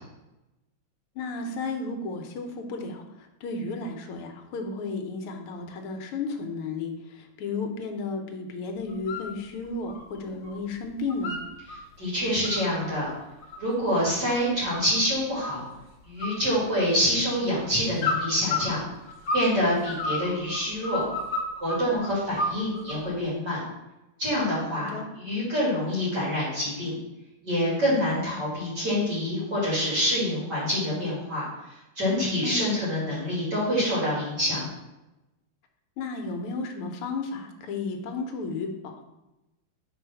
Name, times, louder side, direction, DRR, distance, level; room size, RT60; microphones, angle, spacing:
voice 1, 1.2-11.4 24.8-25.1 32.4-32.8 36.0-39.0, left 3 dB, 80° left, 4 dB, 1.8 m, -33 dB
sound 1, 8.9-9.3 9.6-10.6 10.9-11.8 12.2-15.0 15.4-15.9 16.2-17.2 18.0-19.5 19.8-21.9 22.4-23.1, left 2 dB, 60° left, 1.6 m, -31 dB
voice 2, 12.0-13.1 13.6-15.6 16.0-18.8 19.3-21.0 21.6-23.6 24.2-26.9 27.4-31.4 32.0-34.7, equal, 50° right, -8 dB, 3.1 m, -26 dB
4.9 x 4.7 x 5.7 m, 0.97 s
omnidirectional pair, 2.4 m